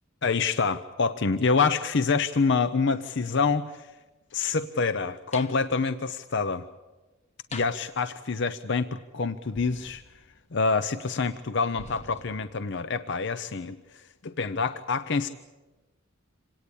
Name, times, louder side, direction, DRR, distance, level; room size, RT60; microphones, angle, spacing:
voice 1, 0.2-3.9 4.3-6.7 7.5-10.0 10.5-15.3, left 4 dB, 55° left, 12 dB, 0.7 m, -27 dB
sound 1, 5.3-5.6 7.5-7.9 9.5-10.6 11.8-12.7, left 3 dB, 35° left, 1.2 m, -44 dB
26.5 x 18.0 x 8.6 m, 1.2 s
head